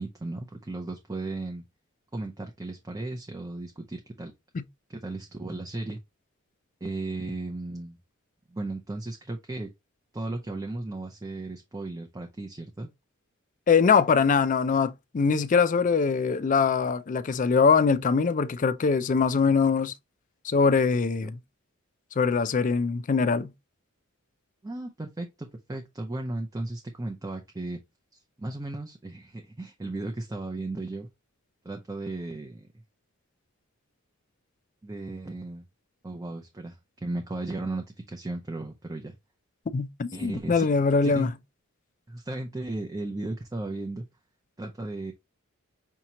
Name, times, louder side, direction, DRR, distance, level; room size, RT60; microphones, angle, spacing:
voice 1, 0.0-1.6 2.1-4.3 4.9-6.0 6.8-8.0 8.5-9.7 10.1-12.9 21.2-21.3 24.6-27.8 28.1-31.1 31.6-32.7 34.8-35.7 36.0-39.1 40.1-40.7 41.0-41.3 42.1-44.0 44.6-45.1, right 2 dB, 15° right, 0.6 m, -35 dB
voice 2, 13.7-19.9 20.4-21.4 22.2-23.5 39.7-41.3, left 5 dB, 35° left, 0.4 m, -23 dB
5.8 x 2.9 x 2.8 m
head